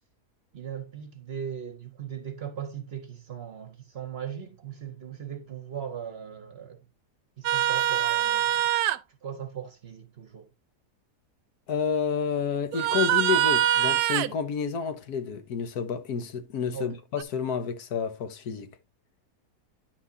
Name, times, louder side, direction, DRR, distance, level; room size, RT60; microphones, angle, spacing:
voice 1, 0.5-6.8 7.4-8.8 9.2-10.5 16.7-17.0, right 8 dB, 50° right, 0.9 m, -38 dB
sound 1, 7.4-9.0 12.7-14.3 17.2-17.3, right 12 dB, 85° right, 1.1 m, -24 dB
voice 2, 11.7-18.7, left 6 dB, 75° left, 1.5 m, -30 dB
9.7 x 6.0 x 2.7 m
omnidirectional pair, 1.7 m